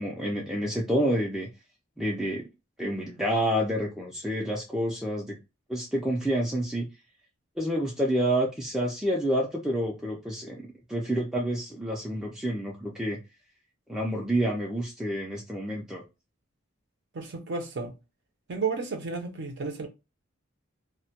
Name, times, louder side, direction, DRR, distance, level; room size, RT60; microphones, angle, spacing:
voice 1, 0.0-1.5 2.0-2.4 2.8-5.4 5.7-6.9 7.6-13.2 13.9-16.0, equal, 5° right, 0.4 m, -28 dB
voice 2, 17.1-18.0 18.5-19.9, right 4 dB, 60° right, 0.6 m, -32 dB
2.1 x 2.1 x 2.7 m
head